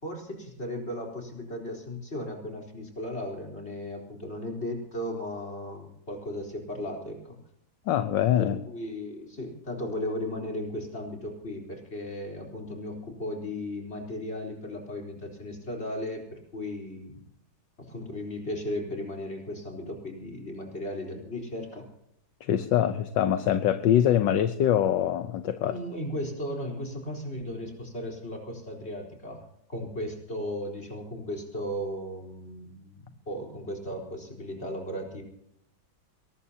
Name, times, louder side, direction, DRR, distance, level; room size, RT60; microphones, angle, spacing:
voice 1, 0.0-7.4 8.4-17.2 17.8-21.9 25.6-35.2, left 1 dB, 30° left, 0 dB, 4.4 m, -36 dB
voice 2, 7.9-8.6 22.4-25.8, left 10 dB, 70° left, 10 dB, 1.5 m, -24 dB
22.0 x 19.5 x 2.9 m, 0.76 s
omnidirectional pair, 2.1 m